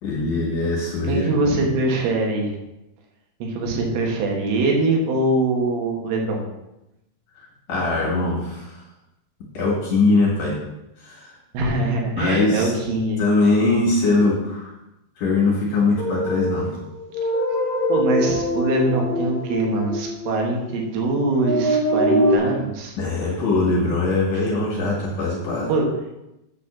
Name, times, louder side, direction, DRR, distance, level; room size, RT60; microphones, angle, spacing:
voice 1, 0.0-1.2 7.7-8.8 9.5-10.6 11.0-11.3 12.1-12.7 13.2-14.7 15.2-16.8 23.0-25.7, left 3 dB, 50° left, -5 dB, 2.9 m, -21 dB
voice 2, 1.0-2.5 3.4-6.4 11.5-13.2 17.9-22.9 25.7-25.9, right 2 dB, 80° right, 0 dB, 4.0 m, -23 dB
sound 1, 16.0-20.7 21.4-22.4, equal, 25° right, 1.5 m, -23 dB
9.3 x 4.2 x 7.0 m, 0.91 s
omnidirectional pair, 5.6 m